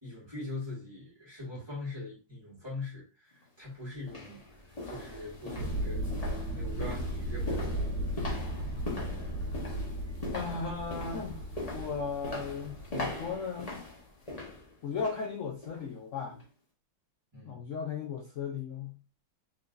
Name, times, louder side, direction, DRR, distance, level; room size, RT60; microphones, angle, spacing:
voice 1, 0.0-3.3 3.6-4.4 4.9-6.1 6.5-7.9 17.3-17.5, left 2 dB, 15° right, 1.8 m, -42 dB
sound 1, 3.3-3.4 4.0-15.3 15.6-15.9 16.3-16.4, left 2 dB, 25° left, 1.0 m, -41 dB
sound 2, 5.6-13.4, equal, 75° right, 1.8 m, -36 dB
voice 2, 10.3-11.4 11.7-13.8 14.8-16.4 17.4-18.9, left 5 dB, 70° left, 0.7 m, -36 dB
4.3 x 3.8 x 2.6 m
omnidirectional pair, 2.2 m